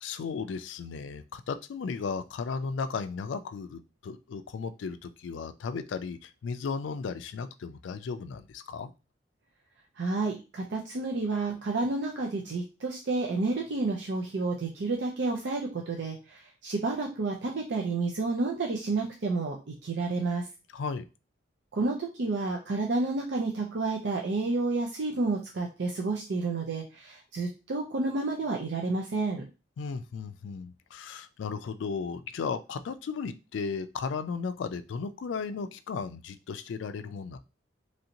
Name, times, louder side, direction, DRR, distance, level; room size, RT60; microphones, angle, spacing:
voice 1, 0.0-8.9 20.7-21.1 29.8-37.4, left 5 dB, 90° left, 11 dB, 0.3 m, -35 dB
voice 2, 10.0-20.5 21.7-29.4, right 3 dB, 70° right, 1 dB, 0.5 m, -30 dB
3.1 x 2.6 x 2.8 m, 0.30 s
head